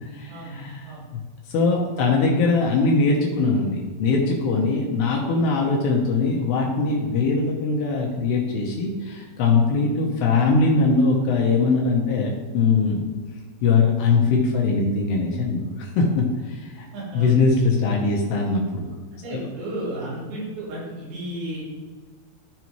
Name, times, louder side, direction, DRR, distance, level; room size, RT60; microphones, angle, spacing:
voice 1, 0.0-0.9 1.5-13.1 13.6-16.9 17.1-18.8 19.3-19.4, left 4 dB, 75° left, -1 dB, 2.5 m, -21 dB
voice 2, 16.9-17.6 19.1-21.6, right 1 dB, 85° right, -7 dB, 5.8 m, -34 dB
14.0 x 5.5 x 3.1 m, 1.4 s
omnidirectional pair, 6.0 m